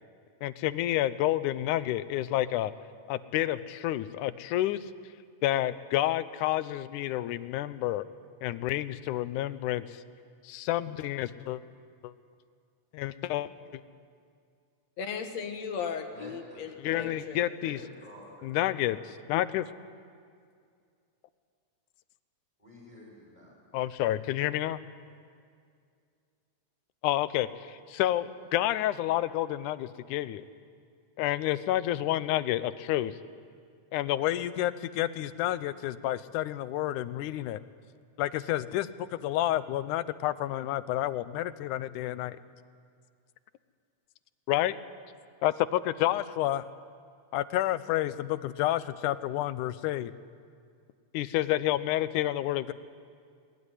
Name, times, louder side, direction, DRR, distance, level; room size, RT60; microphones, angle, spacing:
voice 1, 0.4-2.7 3.1-4.8 5.4-8.1 8.4-9.8 10.4-11.6 12.0-12.1 12.9-13.8 16.8-17.8 18.4-19.0 19.3-19.7 23.7-24.8 27.0-30.4 31.2-33.1 33.9-37.6 38.2-42.4 44.5-44.8 45.4-46.6 47.3-50.1 51.1-52.7, left 14 dB, 85° left, 15 dB, 2.2 m, -29 dB
voice 2, 15.0-17.4, left 6 dB, 65° left, 6 dB, 2.6 m, -36 dB
voice 3, 16.1-17.1 17.6-19.1 22.6-23.5, left 2 dB, 15° left, -3 dB, 5.4 m, -49 dB
20.0 x 18.0 x 9.9 m, 2.3 s
omnidirectional pair, 3.5 m